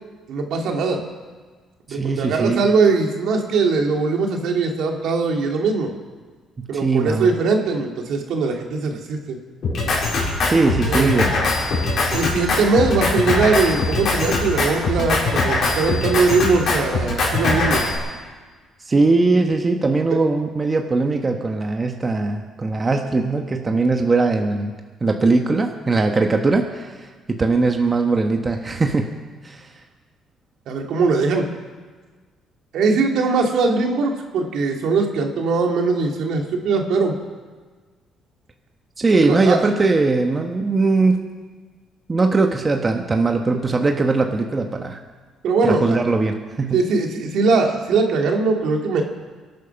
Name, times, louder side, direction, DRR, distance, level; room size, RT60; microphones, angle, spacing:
voice 1, 0.3-1.0 1.9-5.9 6.7-9.4 10.9-11.2 12.1-17.8 30.7-31.5 32.7-37.1 39.2-39.6 45.4-46.0 46.7-49.0, right 4 dB, 70° right, 2 dB, 2.3 m, -20 dB
voice 2, 1.9-2.7 6.6-7.4 10.4-11.3 18.9-24.7 25.0-29.0 29.4-29.7 39.0-41.2 42.1-45.0 45.6-46.8, right 3 dB, 25° right, 4 dB, 1.1 m, -20 dB
Drum kit, 9.6-18.0, left 3 dB, 60° left, 4.8 m, -21 dB
23.0 x 9.3 x 5.9 m, 1.4 s
cardioid pair, 100°, 0 cm